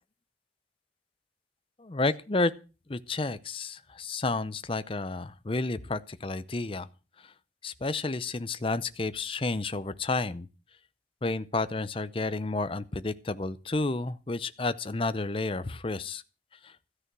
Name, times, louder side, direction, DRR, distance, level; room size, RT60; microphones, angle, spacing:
voice 1, 1.8-2.5 2.9-6.9 7.6-10.5 11.2-16.2 16.6-16.7, left 3 dB, 30° left, 0.6 m, -31 dB
13.5 x 9.7 x 6.1 m
head